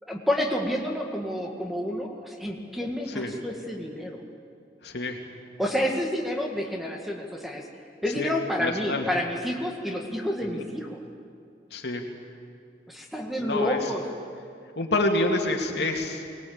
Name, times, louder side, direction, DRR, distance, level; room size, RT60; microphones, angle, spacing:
voice 1, 0.0-4.2 5.6-7.7 8.0-11.0 12.9-14.0, left 1 dB, ahead, 1 dB, 2.0 m, -29 dB
voice 2, 4.8-5.2 8.2-8.3 8.6-9.1 10.5-10.6 11.7-12.0 13.4-13.8 14.8-16.2, left 2 dB, 80° left, 2 dB, 2.5 m, -27 dB
23.5 x 19.0 x 8.8 m, 2.4 s
head